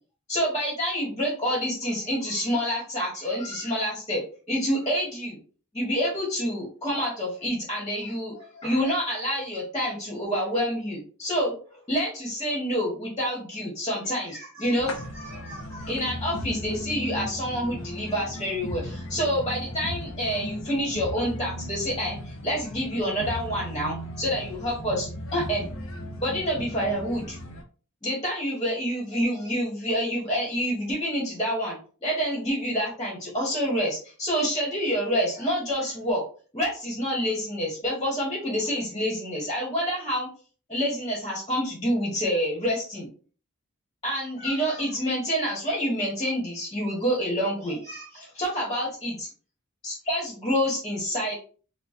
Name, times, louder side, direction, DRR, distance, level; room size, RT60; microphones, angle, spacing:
voice 1, 0.3-4.2 4.5-5.4 5.7-25.7 26.2-27.4 28.0-36.2 36.5-40.3 40.7-43.1 44.0-49.1 49.8-51.3, equal, 20° left, -4 dB, 1.3 m, -28 dB
sound 1, 14.8-27.6, left 1 dB, 70° left, 0.6 m, -36 dB
4.6 x 2.3 x 2.6 m, 0.39 s
head